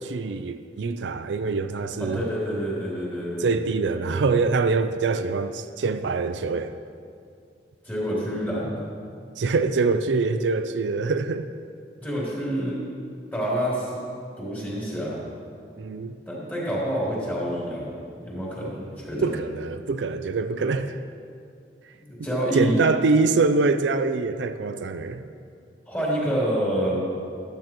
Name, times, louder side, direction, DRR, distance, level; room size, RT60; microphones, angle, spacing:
voice 1, 0.0-2.2 3.4-6.8 9.4-11.4 15.8-16.2 19.2-21.0 22.5-25.2, right 4 dB, 75° right, 9 dB, 0.4 m, -24 dB
voice 2, 2.0-3.6 7.8-8.8 12.0-12.8 13.3-14.0 14.4-15.2 16.3-19.3 22.1-22.9 25.9-27.0, equal, 10° left, -7 dB, 3.2 m, -27 dB
13.5 x 12.0 x 3.0 m, 2.4 s
head